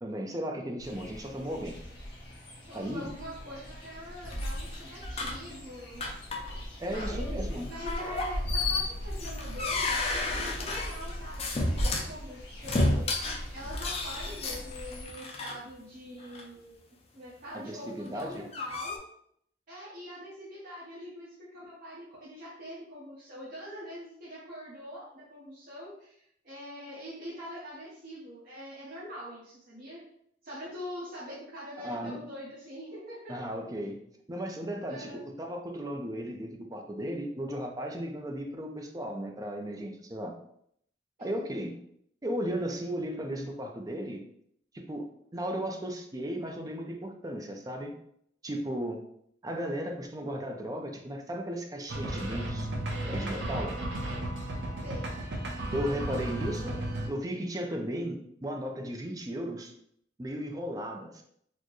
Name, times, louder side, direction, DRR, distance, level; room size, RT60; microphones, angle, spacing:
voice 1, 0.0-1.7 2.7-3.1 6.8-7.7 17.5-18.4 31.8-32.2 33.3-34.0 34.3-40.3 41.2-41.7 42.2-44.2 44.7-45.0 45.3-47.9 48.4-49.0 49.4-52.7 53.1-53.8 55.7-56.8 57.1-59.7 60.2-61.2, equal, 20° right, 3 dB, 0.4 m, -35 dB
sound 1, 0.8-15.0, equal, 90° left, 1.4 m, -39 dB
voice 2, 2.7-6.1 6.9-7.4 7.7-13.1 13.5-16.9 17.1-19.0 19.7-30.0 30.4-33.4 34.9-35.2 41.2-41.5 54.8-55.1 56.6-56.8, equal, 50° right, -8 dB, 0.9 m, -44 dB
sound 2, 4.2-5.5 6.0-6.6 6.9-7.1 7.9-12.1 12.6-15.5 16.2-16.4 18.1-19.0, left 2 dB, 35° left, 0.5 m, -32 dB
sound 3, 51.9-57.1, right 1 dB, 75° right, 0.7 m, -34 dB
4.3 x 2.1 x 3.0 m, 0.69 s
head